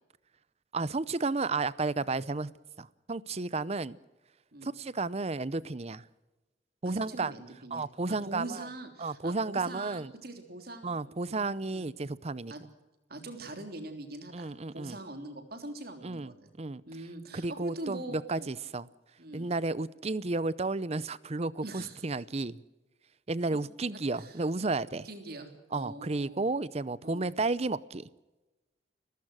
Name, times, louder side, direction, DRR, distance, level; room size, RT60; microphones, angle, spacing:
voice 1, 0.7-2.5 2.8-4.0 4.6-6.0 6.8-7.3 7.7-8.7 9.0-10.1 10.8-12.5 14.3-15.0 16.0-16.3 16.6-16.8 17.3-18.9 19.3-22.6 23.3-25.1 25.7-28.0, right 3 dB, 35° right, 19 dB, 0.7 m, -32 dB
voice 2, 6.8-11.9 12.5-12.6 13.1-16.5 16.9-18.5 19.2-19.5 21.6-22.0 23.9-24.4 25.0-26.4 27.0-27.3, right 2 dB, 55° right, 6 dB, 3.4 m, -43 dB
29.5 x 15.5 x 6.3 m, 1.1 s
head